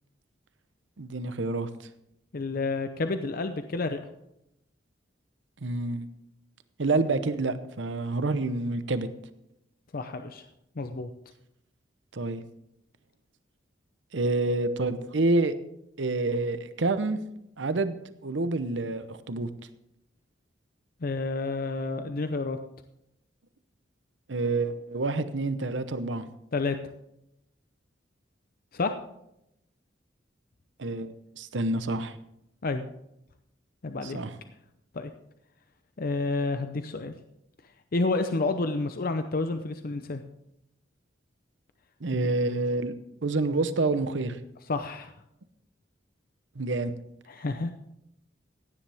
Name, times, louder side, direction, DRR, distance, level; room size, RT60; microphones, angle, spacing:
voice 1, 1.0-1.7 5.6-6.1 6.8-9.1 12.1-12.4 14.1-15.5 16.0-17.2 17.6-19.5 24.3-26.3 30.8-32.1 34.0-34.3 42.0-42.9 43.2-44.4 46.6-46.9, right 2 dB, 70° right, 12 dB, 0.8 m, -28 dB
voice 2, 2.3-4.0 9.9-10.4 10.8-11.1 21.0-22.6 26.5-26.8 28.7-28.9 32.6-32.8 33.8-34.2 34.9-35.1 36.0-37.1 37.9-40.2 42.2-42.3 44.7-45.1 47.3-47.7, left 3 dB, 50° left, 8 dB, 0.6 m, -29 dB
16.0 x 10.0 x 3.5 m, 0.82 s
head